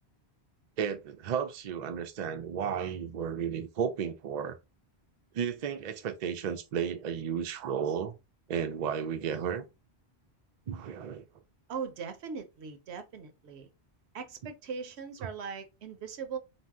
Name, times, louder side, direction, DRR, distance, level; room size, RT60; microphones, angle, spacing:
voice 1, 0.8-4.6 5.3-8.2 8.5-9.6 10.7-11.2 14.4-14.5 15.2-15.3, right 7 dB, 55° right, 0.5 m, -33 dB
voice 2, 11.7-13.7 14.1-16.4, right 6 dB, 80° right, 0.9 m, -40 dB
2.6 x 2.0 x 3.4 m
omnidirectional pair, 1.1 m